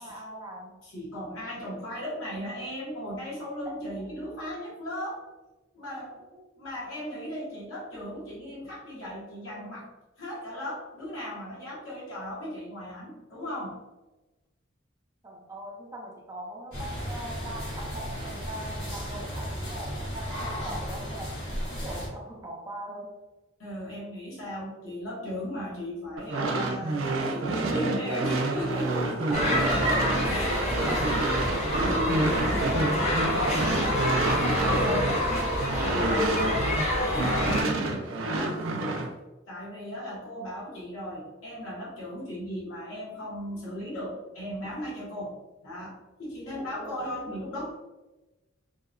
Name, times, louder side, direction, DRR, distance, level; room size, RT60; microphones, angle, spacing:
voice 1, 0.0-0.8 6.0-6.1 15.2-23.1 28.9-29.6 29.8-31.3 46.5-47.1, right 1 dB, 20° right, -2 dB, 0.5 m, -41 dB
voice 2, 0.8-5.3 5.7-6.2 6.6-9.9 10.2-13.8 23.6-28.9 29.3-30.6 31.8-37.6 38.2-38.6 39.5-47.7, equal, 85° left, -7 dB, 0.9 m, -36 dB
sound 1, 16.7-22.1, equal, 60° left, 1.3 m, -35 dB
sound 2, 26.2-36.8 37.1-39.1, right 2 dB, 90° right, 0.4 m, -29 dB
sound 3, 29.3-37.6, left 1 dB, 35° left, 0.6 m, -27 dB
2.7 x 2.0 x 2.4 m, 1.1 s
head